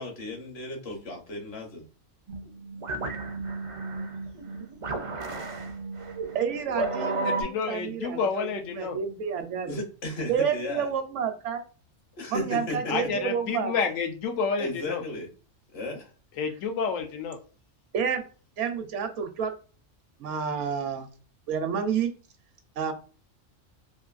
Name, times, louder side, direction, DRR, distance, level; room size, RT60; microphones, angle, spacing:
voice 1, 0.0-1.9 9.7-10.9 12.2-12.9 14.6-15.3 15.7-16.1, left 1 dB, 55° left, 2 dB, 1.0 m, -34 dB
sound 1, 2.3-7.4, right 3 dB, 55° right, 0.3 m, -33 dB
voice 2, 6.3-9.8 10.3-11.6 12.3-13.7 17.9-18.2 18.6-19.5 20.2-21.1 21.5-22.1 22.8-22.9, right 7 dB, 75° right, 7 dB, 0.9 m, -29 dB
voice 3, 7.2-9.0 12.9-15.0 16.4-17.4, left 5 dB, 85° left, 4 dB, 1.0 m, -29 dB
2.9 x 2.5 x 2.4 m, 0.37 s
omnidirectional pair, 1.3 m